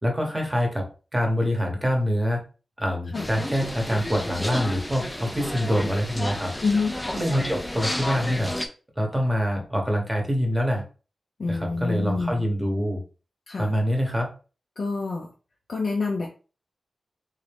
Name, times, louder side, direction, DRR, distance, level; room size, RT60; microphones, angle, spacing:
voice 1, 0.0-0.9 1.1-2.4 2.8-6.5 7.1-8.5 9.0-10.8 11.5-13.0 13.6-14.3, equal, 10° right, 1 dB, 1.0 m, -25 dB
sound 1, 3.1-8.7, left 1 dB, 10° left, 0.4 m, -31 dB
voice 2, 6.6-6.9 11.4-12.4 13.5-13.7 14.8-15.3 15.7-16.3, left 4 dB, 55° left, -1 dB, 0.6 m, -27 dB
3.7 x 2.7 x 3.4 m, 0.35 s
wide cardioid pair, 135°, 0 cm